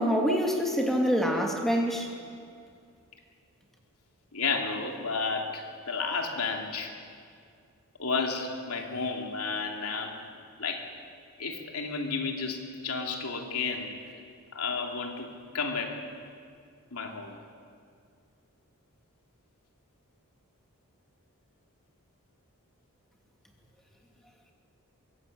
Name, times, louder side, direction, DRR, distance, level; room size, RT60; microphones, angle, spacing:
voice 1, 0.0-2.1, equal, ahead, 0 dB, 2.8 m, -26 dB
voice 2, 4.3-6.9 8.0-10.9 11.4-13.9 14.5-16.0 16.9-17.4, left 4 dB, 80° left, 2 dB, 3.1 m, -32 dB
23.5 x 22.5 x 8.8 m, 2.3 s
head